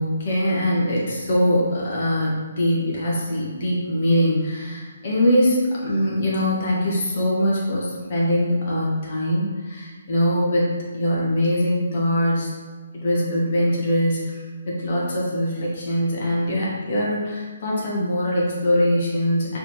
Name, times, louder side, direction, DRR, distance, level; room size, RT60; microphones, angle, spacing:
voice 1, 0.0-12.5 12.9-19.6, equal, 45° left, -5 dB, 1.3 m, -22 dB
4.8 x 3.4 x 3.0 m, 1.3 s
figure-of-eight pair, 135°, 0 cm